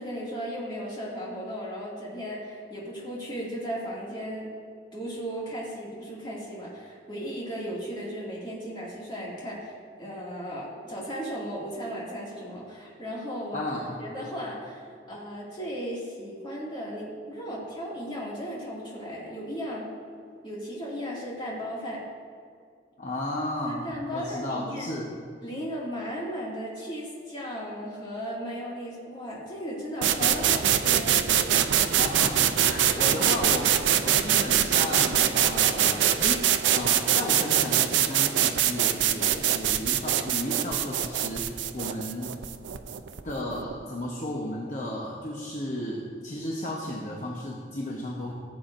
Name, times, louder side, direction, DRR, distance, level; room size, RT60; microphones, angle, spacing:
voice 1, 0.0-4.5 4.9-13.6 14.0-19.8 20.4-22.1 23.8-24.9 25.4-31.1, equal, 25° left, -6 dB, 2.3 m, -36 dB
voice 2, 13.5-14.0 23.0-25.1 31.9-42.3 43.2-48.3, left 1 dB, 45° left, -3 dB, 1.0 m, -34 dB
sound 1, 30.0-43.7, right 10 dB, 90° right, 0.4 m, -24 dB
15.5 x 7.8 x 2.6 m, 2.2 s
head